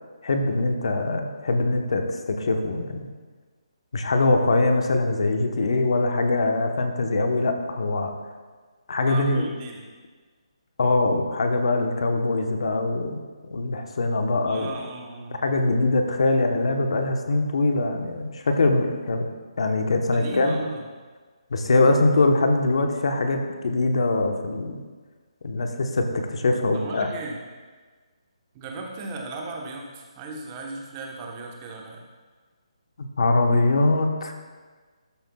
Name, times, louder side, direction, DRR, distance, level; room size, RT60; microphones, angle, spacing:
voice 1, 0.2-3.1 3.9-8.1 8.9-9.5 10.8-13.2 13.5-14.7 15.4-19.2 19.6-20.6 21.5-24.8 25.4-27.1 33.0-34.3, left 2 dB, 60° left, 4 dB, 1.0 m, -23 dB
voice 2, 9.0-9.8 14.5-15.4 20.1-20.9 26.7-27.4 28.5-32.1, right 3 dB, 20° right, 0 dB, 1.0 m, -36 dB
13.0 x 7.7 x 2.3 m, 1.4 s
hypercardioid pair, 165°, 3 cm